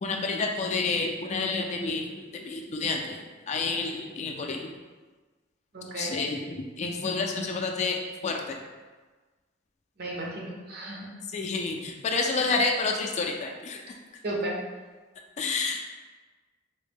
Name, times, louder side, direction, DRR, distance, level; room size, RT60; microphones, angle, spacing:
voice 1, 0.0-2.1 2.3-3.2 3.5-4.7 6.0-8.6 11.3-13.8 15.4-15.8, left 3 dB, 40° left, 2 dB, 0.3 m, -29 dB
voice 2, 5.7-6.1 10.0-11.1 14.2-14.5, right 1 dB, 55° right, -2 dB, 0.7 m, -34 dB
3.9 x 2.1 x 3.4 m, 1.3 s
head